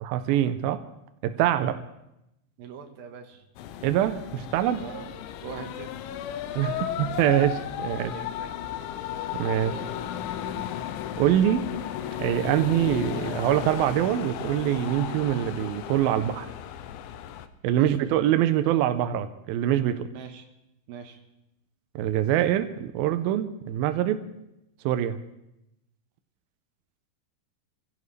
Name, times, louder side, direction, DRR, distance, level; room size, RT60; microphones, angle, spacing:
voice 1, 0.0-0.8 1.2-1.7 3.8-4.8 6.6-8.1 9.4-9.7 11.2-11.6 12.2-16.5 17.6-20.0 22.0-24.2 24.9-25.2, right 12 dB, 90° right, 9 dB, 2.1 m, -24 dB
voice 2, 2.6-3.4 4.8-5.9 7.8-8.5 9.7-9.9 17.8-18.0 20.1-20.5 20.9-21.2, right 7 dB, 65° right, 4 dB, 2.8 m, -42 dB
sound 1, 3.6-17.5, left 10 dB, 90° left, 3.1 m, -34 dB
25.0 x 16.0 x 3.3 m, 0.86 s
omnidirectional pair, 5.2 m